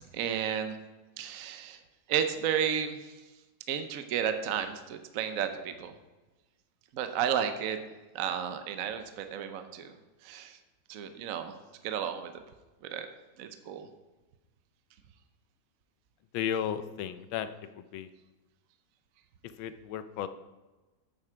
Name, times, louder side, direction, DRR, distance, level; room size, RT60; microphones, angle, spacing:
voice 1, 0.1-0.8 1.2-1.8 2.1-3.1 3.7-5.9 6.9-7.8 8.1-9.9 10.2-10.6 10.9-11.6 11.8-12.3 12.9-13.1 13.4-13.9, right 8 dB, 60° right, 8 dB, 0.9 m, -32 dB
voice 2, 16.3-18.1 19.6-20.3, left 9 dB, 85° left, 12 dB, 1.4 m, -34 dB
8.9 x 8.1 x 5.0 m, 1.1 s
omnidirectional pair, 2.1 m